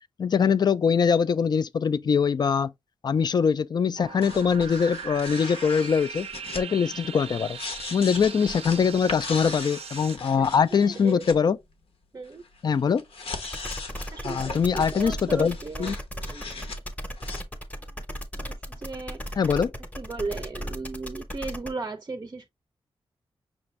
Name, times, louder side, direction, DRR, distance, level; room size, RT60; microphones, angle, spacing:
voice 1, 0.2-2.7 3.0-6.3 6.6-7.6 7.9-11.6 12.6-13.0 14.2-15.5 15.8-15.9 19.4-19.7, left 6 dB, 45° left, 0.3 m, -23 dB
sound 1, 4.0-10.2, right 7 dB, 90° right, 0.5 m, -40 dB
sound 2, 4.2-11.4 12.3-16.8 17.2-17.4, left 4 dB, 75° left, 0.9 m, -39 dB
voice 2, 10.4-11.2 12.1-12.4 14.1-16.8 17.8-18.0 18.3-19.6 20.0-22.5, right 4 dB, 30° right, 0.5 m, -37 dB
sound 3, 13.4-21.7, equal, 15° left, 0.8 m, -36 dB
5.9 x 2.5 x 3.1 m
wide cardioid pair, 135°, 10 cm